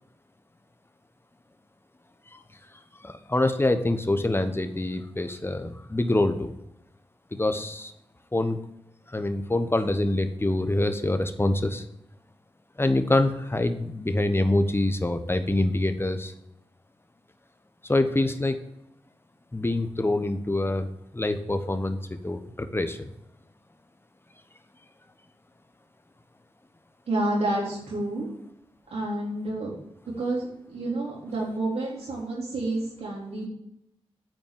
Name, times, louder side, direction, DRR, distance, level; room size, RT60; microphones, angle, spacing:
voice 1, 3.0-6.5 7.3-7.9 8.3-8.6 9.1-11.8 12.8-16.3 17.9-18.6 19.5-20.9 21.1-23.1, left 2 dB, 20° left, 9 dB, 1.1 m, -25 dB
voice 2, 27.1-28.3 28.9-29.7 30.1-33.5, right 2 dB, 75° right, -4 dB, 3.7 m, -29 dB
9.0 x 4.3 x 7.3 m, 0.82 s
cardioid pair, 40°, 11 cm